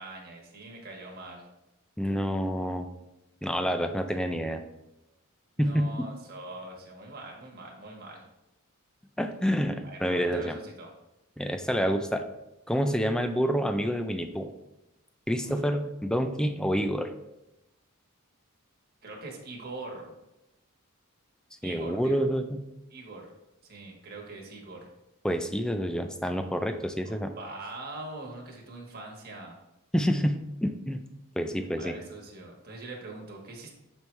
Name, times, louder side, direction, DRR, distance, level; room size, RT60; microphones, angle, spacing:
voice 1, 0.0-1.5 5.6-8.2 9.8-10.9 15.4-15.6 19.0-20.1 21.6-22.2 22.9-23.3 23.6-24.9 27.0-29.6 31.8-33.7, right 2 dB, 45° right, -1 dB, 1.3 m, -42 dB
voice 2, 2.0-2.9 3.4-4.6 5.6-6.1 9.2-10.6 11.4-12.2 12.7-14.5 15.3-17.1 21.6-22.6 25.2-27.3 29.9-31.0 31.4-32.0, equal, 5° left, 7 dB, 0.4 m, -28 dB
6.9 x 4.5 x 3.2 m, 0.95 s
head